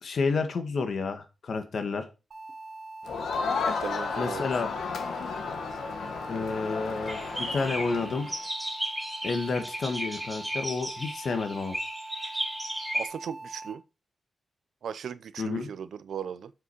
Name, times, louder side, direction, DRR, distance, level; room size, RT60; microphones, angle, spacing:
voice 1, 0.0-2.0 4.2-4.7 6.3-8.3 9.2-11.8 15.4-15.7, left 4 dB, 60° left, 1.7 m, -30 dB
sound 1, 2.3-13.7, right 2 dB, 55° right, 1.6 m, -43 dB
Crowd, 3.0-8.4, left 5 dB, 85° left, 1.4 m, -33 dB
voice 2, 3.6-4.4 12.9-13.8 14.8-16.5, right 8 dB, 80° right, 0.6 m, -37 dB
sound 2, 7.1-13.1, right 1 dB, 5° right, 4.9 m, -35 dB
7.6 x 6.2 x 5.5 m
wide cardioid pair, 135°, 0 cm